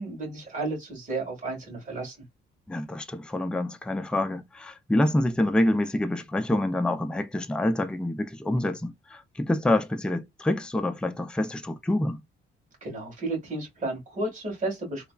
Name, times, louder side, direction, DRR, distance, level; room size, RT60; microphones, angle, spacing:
voice 1, 0.0-2.1 12.8-15.1, right 2 dB, 40° right, 1.9 m, -32 dB
voice 2, 2.7-12.2, left 1 dB, 5° left, 0.4 m, -27 dB
3.2 x 2.1 x 2.3 m
cardioid pair, 90°, 20 cm